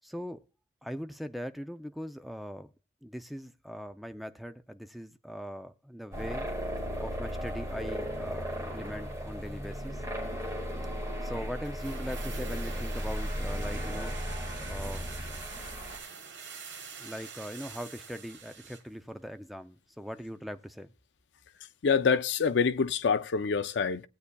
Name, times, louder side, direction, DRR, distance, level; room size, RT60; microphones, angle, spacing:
voice 1, 0.0-0.4 0.8-2.7 3.0-6.5 7.0-10.0 11.2-14.2 14.7-15.2 17.0-20.9, equal, ahead, 0.4 m, -40 dB
sound 1, 6.1-16.0, equal, 15° right, 1.9 m, -35 dB
sound 2, 11.6-18.9 19.2-19.3, right 6 dB, 70° right, 1.6 m, -46 dB
voice 2, 21.8-24.0, left 5 dB, 65° left, 0.5 m, -26 dB
18.0 x 8.2 x 2.3 m
head